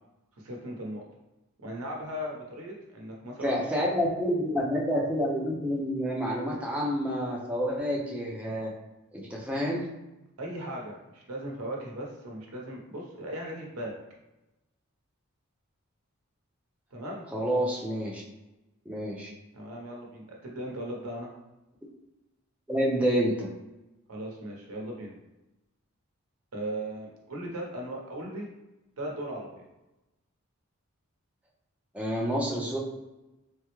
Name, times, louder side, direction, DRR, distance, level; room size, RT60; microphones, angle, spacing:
voice 1, 0.4-1.0 1.6-3.6 10.4-14.0 16.9-17.3 19.5-21.3 24.1-25.2 26.5-28.5 29.0-29.7, right 1 dB, 85° right, -1 dB, 0.8 m, -37 dB
voice 2, 3.4-8.7 9.1-9.8 17.3-18.2 18.9-19.3 22.7-23.5 31.9-32.8, equal, 5° right, -4 dB, 0.5 m, -28 dB
3.4 x 2.1 x 3.0 m, 1.0 s
head